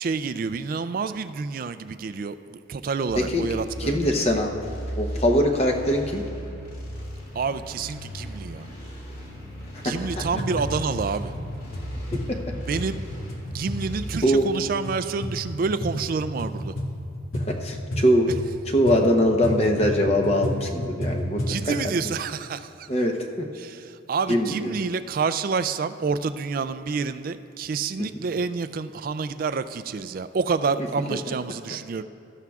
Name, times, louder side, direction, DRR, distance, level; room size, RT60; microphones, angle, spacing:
voice 1, 0.0-4.3 7.4-8.7 9.8-11.3 12.7-13.0 13.5-16.8 21.4-22.9 23.6-32.0, right 5 dB, 45° right, 12 dB, 0.3 m, -28 dB
sound 1, 3.1-14.3, equal, 45° left, 2.4 m, -36 dB
voice 2, 3.8-4.5 5.0-6.2 9.7-10.2 12.1-12.4 14.2-14.5 17.3-18.3 18.7-21.4 21.7-21.9 22.9-23.4 24.3-24.7 28.0-28.1, equal, 30° left, 3 dB, 0.8 m, -22 dB
sound 2, 10.0-21.6, left 1 dB, 90° left, 1.7 m, -32 dB
16.5 x 13.0 x 2.4 m, 2.5 s
head